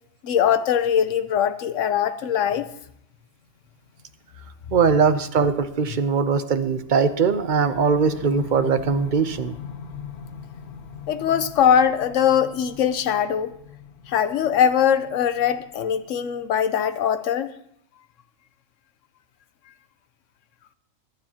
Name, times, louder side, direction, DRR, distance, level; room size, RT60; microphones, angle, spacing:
voice 1, 0.2-2.7 11.1-13.5 14.1-17.5, left 8 dB, 60° left, 12 dB, 1.0 m, -21 dB
voice 2, 4.7-9.5, right 5 dB, 45° right, 10 dB, 0.6 m, -21 dB
sound 1, 6.6-16.6, left 7 dB, 85° left, 1.5 m, -41 dB
24.0 x 9.7 x 2.9 m, 0.73 s
omnidirectional pair, 1.5 m